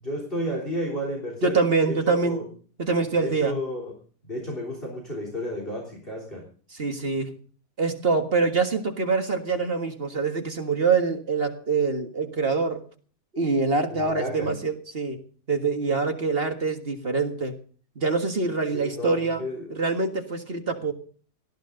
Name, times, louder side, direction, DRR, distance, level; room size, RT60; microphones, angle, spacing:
voice 1, 0.0-1.6 1.8-2.5 3.2-3.9 4.2-6.5 13.9-14.6 18.7-19.7, equal, 35° left, 0 dB, 3.6 m, -32 dB
voice 2, 1.4-2.4 2.8-3.5 6.7-7.3 7.8-12.8 13.3-15.2 15.5-17.6 18.0-19.4 19.8-20.9, right 4 dB, 40° right, 5 dB, 1.8 m, -25 dB
18.5 x 14.0 x 3.9 m, 0.42 s
omnidirectional pair, 1.7 m